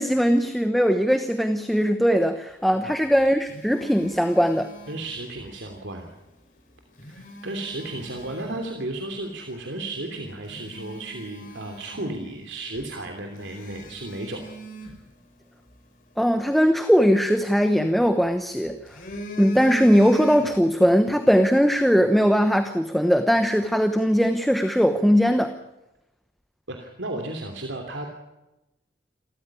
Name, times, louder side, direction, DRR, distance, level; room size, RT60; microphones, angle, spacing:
voice 1, 0.0-4.7 16.2-18.8 19.4-25.5, equal, ahead, 7 dB, 1.0 m, -20 dB
Telephone, 2.9-5.5 6.8-8.7 9.3-9.4 10.0-10.1 10.4-12.5 12.8-12.9 13.4-15.8 17.3-18.3 18.7-20.8 21.1-21.3, right 1 dB, 45° left, 5.5 m, -39 dB
voice 2, 4.9-6.1 7.1-14.5 14.8-14.9 26.7-28.1, right 2 dB, 80° right, 3 dB, 3.0 m, -34 dB
28.0 x 14.0 x 10.0 m, 0.97 s
head